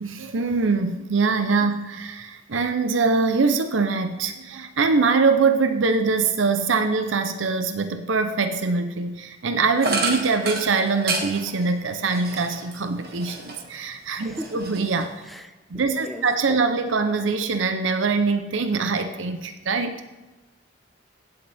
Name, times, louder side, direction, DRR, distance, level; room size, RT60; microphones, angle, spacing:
voice 1, 0.0-15.1 15.7-20.0, right 4 dB, 85° right, 8 dB, 0.7 m, -23 dB
sound 1, 9.8-13.8 14.2-15.3, right 3 dB, 50° right, 1.6 m, -30 dB
voice 2, 14.2-14.6 15.2-16.6, equal, ahead, 7 dB, 0.6 m, -38 dB
16.5 x 8.0 x 3.5 m, 1.1 s
head